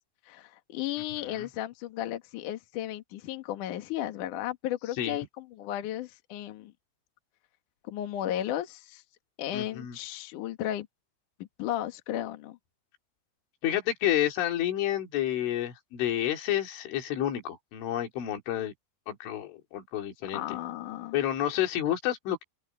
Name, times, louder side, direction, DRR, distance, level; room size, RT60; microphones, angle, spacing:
voice 1, 0.3-6.7 7.8-9.0 9.4-10.9 11.4-12.6 20.3-21.2, left 12 dB, 60° left, 2.4 m, -34 dB
voice 2, 9.5-10.0 13.6-18.7 19.1-20.4 21.1-22.4, left 12 dB, 90° left, 5.0 m, -29 dB
open air
omnidirectional pair, 5.4 m